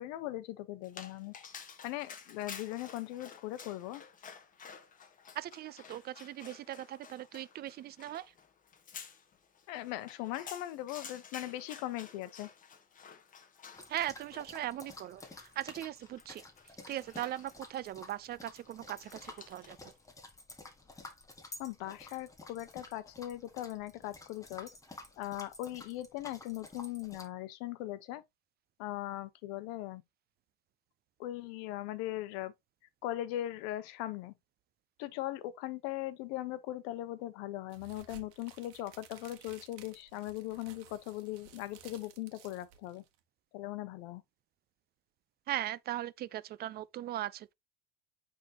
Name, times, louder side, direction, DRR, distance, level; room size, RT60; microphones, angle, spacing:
voice 1, 0.0-1.3 1.8-4.0 9.7-12.5 21.6-24.7 25.2-28.2 28.8-30.0 31.2-32.5 33.0-34.3 35.0-43.0 43.5-44.2, left 15 dB, 65° left, 1.0 m, -39 dB
Dog, 0.8-19.9, left 6 dB, 25° left, 1.2 m, -52 dB
voice 2, 5.3-8.3 13.9-16.4 16.9-19.9 45.5-47.5, right 13 dB, 35° right, 0.5 m, -39 dB
sound 1, 13.7-27.3, left 2 dB, 10° left, 1.6 m, -51 dB
sound 2, 37.7-43.2, right 10 dB, 65° right, 1.5 m, -56 dB
8.8 x 3.8 x 2.9 m
supercardioid pair, 120°, 30 cm